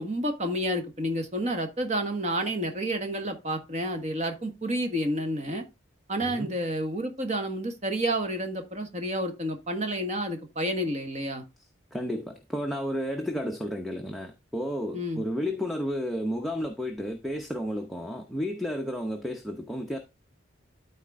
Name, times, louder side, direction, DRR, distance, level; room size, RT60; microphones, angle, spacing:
voice 1, 0.0-5.6 6.1-11.4 14.9-15.2, right 1 dB, 35° right, 1.4 m, -30 dB
voice 2, 6.2-6.5 11.9-20.0, equal, ahead, 0.7 m, -32 dB
12.5 x 4.3 x 3.6 m
head